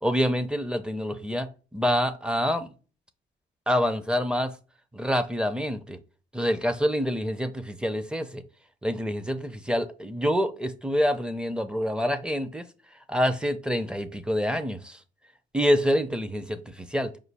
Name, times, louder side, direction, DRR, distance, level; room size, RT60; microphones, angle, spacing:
voice 1, 0.0-2.7 3.7-4.5 4.9-6.0 6.3-8.4 8.8-12.6 13.1-15.0 15.5-17.1, equal, 5° right, 0.5 m, -26 dB
5.1 x 2.3 x 3.3 m
cardioid pair, 90°, 20 cm